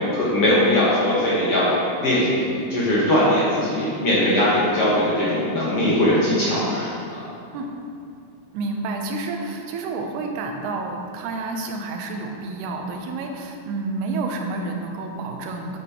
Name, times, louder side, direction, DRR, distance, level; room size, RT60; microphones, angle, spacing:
voice 1, 0.1-1.7 2.0-7.2, left 1 dB, 70° left, -8 dB, 1.4 m, -20 dB
voice 2, 8.5-15.8, right 3 dB, 80° right, 3 dB, 2.7 m, -29 dB
9.5 x 7.9 x 2.9 m, 2.5 s
omnidirectional pair, 4.8 m